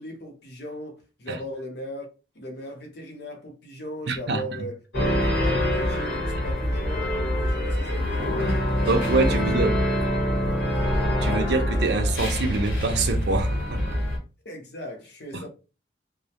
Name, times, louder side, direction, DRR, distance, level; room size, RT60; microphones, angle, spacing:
voice 1, 0.0-2.1 2.3-4.8 5.3-8.9 9.2-10.7 14.4-15.5, equal, 65° left, 0.7 m, -38 dB
voice 2, 4.1-4.4 8.9-9.7 11.2-13.8, right 3 dB, 65° right, 0.5 m, -25 dB
sound 1, 4.9-14.2, equal, 85° left, 1.1 m, -25 dB
2.1 x 2.1 x 2.8 m
head